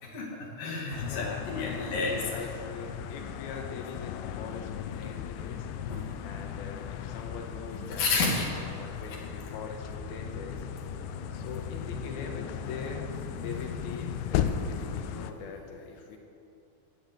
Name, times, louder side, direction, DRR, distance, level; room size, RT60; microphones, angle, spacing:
voice 1, 0.0-2.2 5.9-6.0 7.9-8.5, left 3 dB, 50° left, -2 dB, 3.7 m, -30 dB
traffic jupiter farther, 0.9-15.3, left 9 dB, 85° left, 2.5 m, -36 dB
voice 2, 1.1-5.7 6.2-10.7 11.3-13.0 13.3-16.2, left 4 dB, 65° left, 2 dB, 2.7 m, -42 dB
sound 1, 9.6-15.1, equal, 50° right, 5.1 m, -46 dB
19.5 x 7.4 x 8.0 m, 2.6 s
omnidirectional pair, 5.4 m